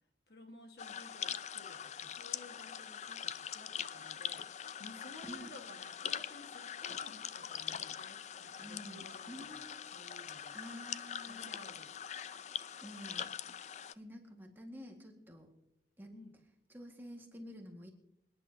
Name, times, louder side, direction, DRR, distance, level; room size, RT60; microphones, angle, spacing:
voice 1, 0.3-10.6 11.2-12.0 16.1-16.3, left 1 dB, 65° left, 5 dB, 1.7 m, -56 dB
sound 1, 0.8-13.9, left 9 dB, 40° left, 0.4 m, -43 dB
voice 2, 8.6-9.7 10.5-11.5 12.8-13.3 13.9-15.5 16.0-16.1 16.7-17.9, equal, 10° right, 1 dB, 1.8 m, -49 dB
27.5 x 10.5 x 2.8 m, 0.80 s
head